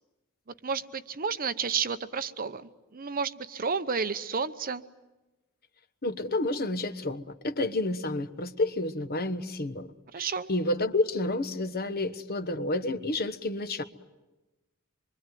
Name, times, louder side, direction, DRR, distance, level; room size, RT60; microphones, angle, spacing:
voice 1, 0.6-4.8 10.1-10.5, right 5 dB, 40° right, 12 dB, 0.8 m, -31 dB
voice 2, 6.0-9.9 10.2-13.8, left 2 dB, 45° left, 10 dB, 1.2 m, -30 dB
26.0 x 24.5 x 9.3 m, 1.1 s
head